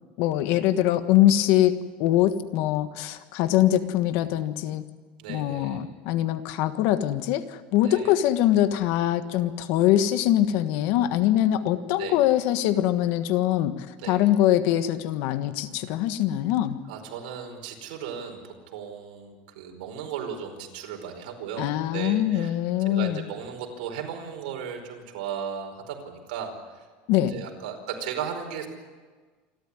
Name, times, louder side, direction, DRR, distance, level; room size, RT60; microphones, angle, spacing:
voice 1, 0.2-4.8 5.3-16.8 21.6-23.2 27.1-27.3, left 12 dB, 60° left, 11 dB, 1.5 m, -23 dB
voice 2, 5.2-5.8 7.8-8.1 12.0-12.2 14.0-14.2 16.9-22.6 22.8-26.9 27.3-28.7, right 7 dB, 80° right, 3 dB, 4.8 m, -36 dB
27.5 x 12.5 x 9.9 m, 1.4 s
supercardioid pair, 155°, 5 cm